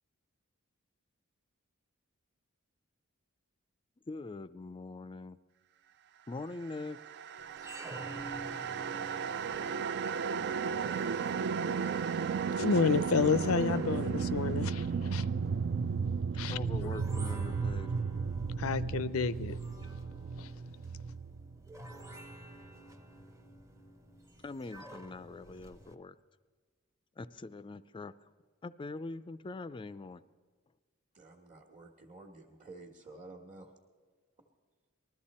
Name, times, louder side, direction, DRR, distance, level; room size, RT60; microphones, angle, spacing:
voice 1, 4.1-5.4 6.3-7.0 16.5-17.9 24.4-26.2 27.2-28.1 28.6-30.2, left 3 dB, 25° left, 0.4 m, -43 dB
sound 1, 6.9-22.1, right 5 dB, 55° right, 0.4 m, -34 dB
sound 2, 7.4-26.0, right 2 dB, 15° right, 0.7 m, -51 dB
voice 2, 12.6-15.2 16.4-17.0 18.6-19.6 20.4-20.5, left 5 dB, 80° left, 0.5 m, -30 dB
voice 3, 31.1-33.7, right 2 dB, 35° right, 1.4 m, -51 dB
20.0 x 13.0 x 4.3 m
head